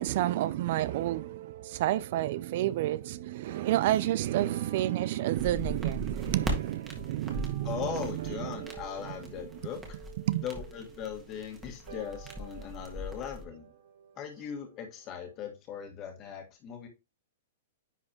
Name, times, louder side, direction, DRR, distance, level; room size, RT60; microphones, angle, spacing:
voice 1, 0.0-8.7 9.1-9.2 10.3-10.4, right 14 dB, 50° right, 0.3 m, -30 dB
sound 1, 0.8-15.5, right 10 dB, 70° right, 1.6 m, -50 dB
sound 2, 5.4-13.4, equal, 10° right, 1.5 m, -40 dB
voice 2, 7.6-10.0 10.4-13.7 14.2-16.9, left 8 dB, 30° left, 1.8 m, -39 dB
9.9 x 4.1 x 3.0 m
hypercardioid pair, 155°, 0 cm